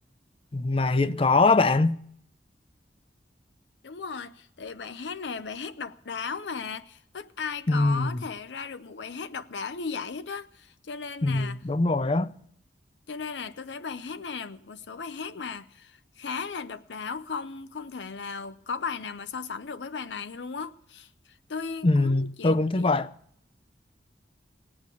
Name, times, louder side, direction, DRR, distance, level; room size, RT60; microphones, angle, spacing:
voice 1, 0.5-2.0 7.7-8.2 11.2-12.3 21.8-23.1, left 3 dB, 30° left, 0.5 m, -23 dB
voice 2, 3.8-11.6 13.1-21.1 21.5-22.9, left 5 dB, 85° left, 0.6 m, -36 dB
18.0 x 8.8 x 8.3 m
head